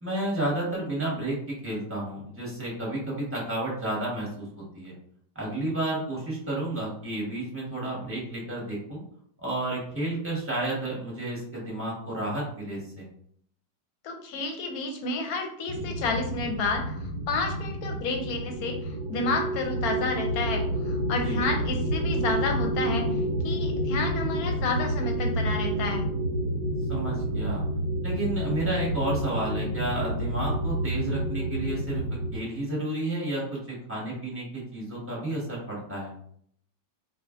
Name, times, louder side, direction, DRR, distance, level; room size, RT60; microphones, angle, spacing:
voice 1, 0.0-4.3 4.6-4.9 5.3-9.0 9.4-13.0 21.2-21.4 26.9-27.6 28.0-32.0 32.3-34.5 34.7-36.1, right 1 dB, 10° right, -5 dB, 0.8 m, -31 dB
voice 2, 14.0-26.0, left 3 dB, 70° left, 3 dB, 1.0 m, -31 dB
sound 1, 15.7-32.4, right 1 dB, 70° right, 1.0 m, -29 dB
4.3 x 2.4 x 2.4 m, 0.64 s
omnidirectional pair, 1.9 m